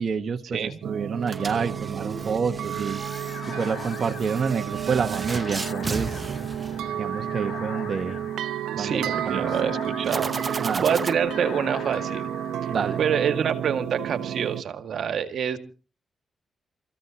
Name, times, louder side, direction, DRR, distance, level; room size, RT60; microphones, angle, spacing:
voice 1, 0.0-3.0 3.6-6.2 7.0-8.2 8.8-9.5 10.6-11.0 12.7-13.0, right 6 dB, 55° right, 4 dB, 1.3 m, -28 dB
sound 1, 0.8-14.6, right 10 dB, 90° right, 0.8 m, -31 dB
sound 2, 1.2-7.4 10.0-11.1, right 3 dB, 35° right, 0.8 m, -35 dB
sound 3, 2.7-13.0, left 8 dB, 85° left, 1.4 m, -42 dB
voice 2, 8.7-12.3 12.6-15.6, right 7 dB, 75° right, 8 dB, 1.9 m, -27 dB
28.5 x 15.0 x 2.9 m, 0.37 s
cardioid pair, 65°, 0 cm